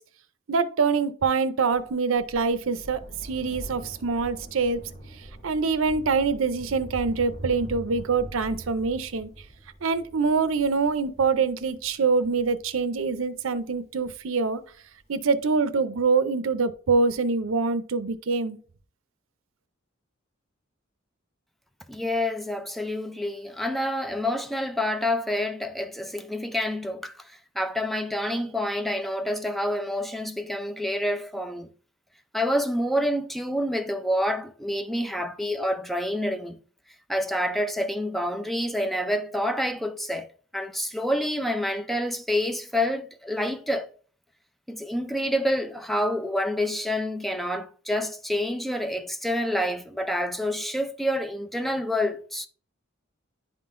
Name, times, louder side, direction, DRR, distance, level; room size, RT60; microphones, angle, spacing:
voice 1, 0.5-4.9 5.4-9.3 9.8-14.6 15.1-18.6, right 4 dB, 80° right, 0.6 m, -25 dB
Thunder, 1.7-14.6 15.5-15.6, right 1 dB, 35° left, 1.9 m, -43 dB
voice 2, 21.9-31.7 32.3-36.6 37.1-40.3 40.5-43.9 44.7-52.5, left 1 dB, ahead, 0.4 m, -28 dB
10.5 x 3.7 x 2.6 m
head